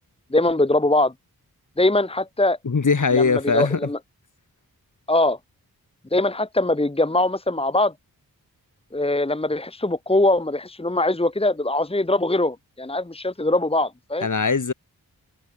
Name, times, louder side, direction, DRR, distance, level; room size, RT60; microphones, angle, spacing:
voice 1, 0.3-1.1 1.8-2.6 3.1-4.0 5.1-5.4 6.1-7.9 8.9-14.3, left 2 dB, 15° left, 1.9 m, -22 dB
voice 2, 2.6-3.9 14.2-14.7, left 4 dB, 55° left, 5.4 m, -21 dB
wide cardioid pair, 105°, 37 cm